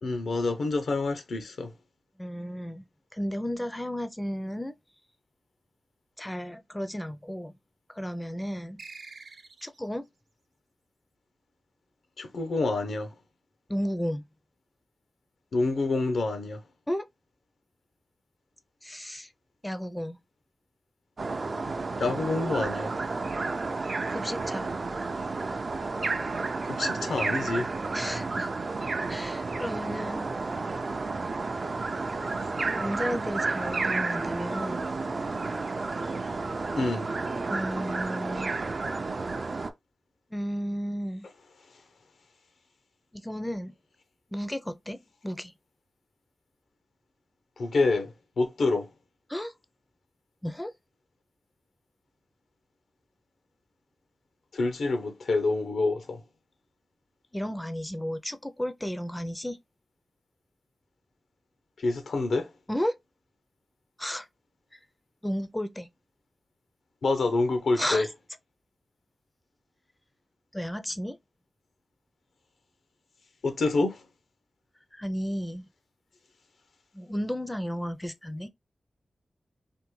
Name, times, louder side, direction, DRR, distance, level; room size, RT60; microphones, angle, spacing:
voice 1, 0.0-1.7 12.2-13.1 15.5-16.6 22.0-22.9 26.6-27.7 36.8-37.1 47.6-48.9 54.5-56.2 61.8-62.5 67.0-68.1 73.4-74.0, left 3 dB, 80° left, 0.5 m, -27 dB
voice 2, 2.2-2.8 3.1-4.7 6.2-7.5 7.9-8.8 9.6-10.0 13.7-14.2 16.9-17.1 18.8-19.3 19.6-20.2 24.1-24.7 27.9-28.5 29.1-30.3 32.8-34.8 37.5-38.5 40.3-41.3 43.1-43.7 44.3-45.5 49.3-49.5 50.4-50.7 57.3-59.6 62.7-63.0 64.0-64.3 65.2-65.9 67.8-68.1 70.5-71.2 74.9-75.7 76.9-78.5, equal, 10° left, 0.4 m, -33 dB
sound 1, 8.8-10.0, right 4 dB, 80° right, 0.8 m, -46 dB
sound 2, 21.2-39.7, right 3 dB, 55° right, 0.4 m, -31 dB
3.4 x 2.1 x 3.1 m
cardioid pair, 70°, 0 cm